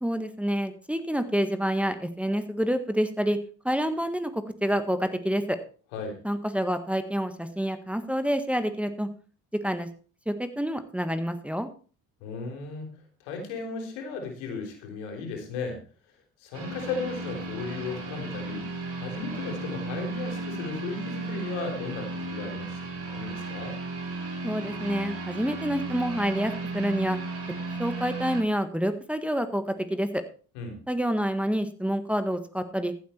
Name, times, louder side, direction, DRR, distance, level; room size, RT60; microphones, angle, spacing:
voice 1, 0.0-3.4 3.6-5.6 6.2-9.1 9.5-9.9 10.3-11.7 24.4-27.2 27.8-30.2 30.9-32.9, equal, 5° right, 8 dB, 1.5 m, -28 dB
voice 2, 12.2-12.9 13.2-15.8 16.4-22.8 23.1-23.8 30.5-30.8, left 4 dB, 85° left, 3 dB, 3.8 m, -35 dB
sound 1, 16.5-28.4, right 3 dB, 40° right, 4.9 m, -35 dB
14.5 x 8.1 x 4.5 m, 0.39 s
supercardioid pair, 75°, 35 cm